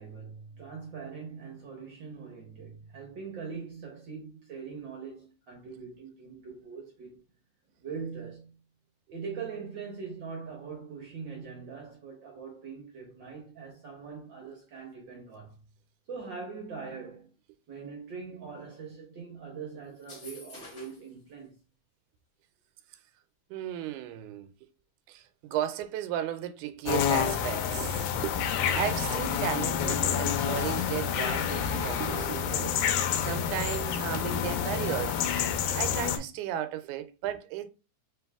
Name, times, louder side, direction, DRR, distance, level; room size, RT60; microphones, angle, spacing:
voice 1, 0.0-7.2 7.8-8.6 9.1-15.6 16.1-17.3 17.7-21.5, right 5 dB, 65° right, 1.1 m, -42 dB
sound 1, 19.9-21.1, left 2 dB, 35° left, 1.8 m, -48 dB
voice 2, 23.5-24.5 25.1-32.8 33.2-35.2 35.5-37.7, right 11 dB, 85° right, 2.0 m, -35 dB
sound 2, 26.9-36.2, left 8 dB, 85° left, 2.0 m, -28 dB
4.5 x 2.9 x 3.4 m
omnidirectional pair, 3.5 m